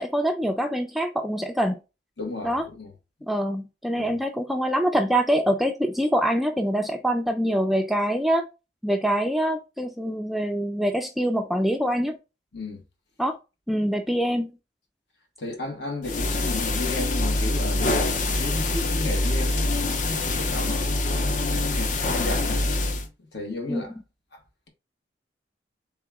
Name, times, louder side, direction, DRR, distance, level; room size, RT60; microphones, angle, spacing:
voice 1, 0.0-1.8 2.4-2.6 3.3-8.5 8.8-12.2 13.2-13.4 13.7-14.5 23.7-23.8, equal, ahead, 0.3 m, -24 dB
voice 2, 2.2-2.9 4.0-4.2 12.5-12.8 15.4-22.7 23.3-23.9 24.3-24.4, left 2 dB, 65° left, 1.3 m, -34 dB
sound 1, 16.0-23.1, left 2 dB, 45° left, 0.6 m, -25 dB
3.5 x 2.9 x 3.4 m
head